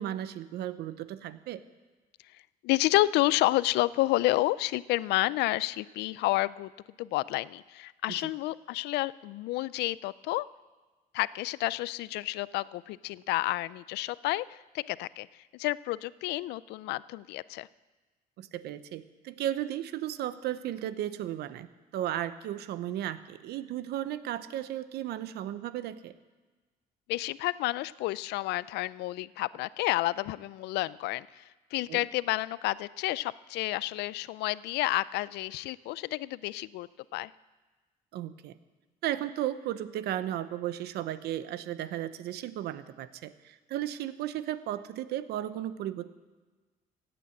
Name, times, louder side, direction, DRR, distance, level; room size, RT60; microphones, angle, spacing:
voice 1, 0.0-1.6 18.4-26.1 31.9-32.0 38.1-38.6 39.0-46.1, right 12 dB, 75° right, 14 dB, 0.8 m, -35 dB
voice 2, 2.3-6.7 7.0-10.5 11.1-15.3 15.5-17.7 27.1-37.3, left 18 dB, 80° left, 19 dB, 0.4 m, -30 dB
16.0 x 9.1 x 7.8 m, 1.3 s
cardioid pair, 110°, 17 cm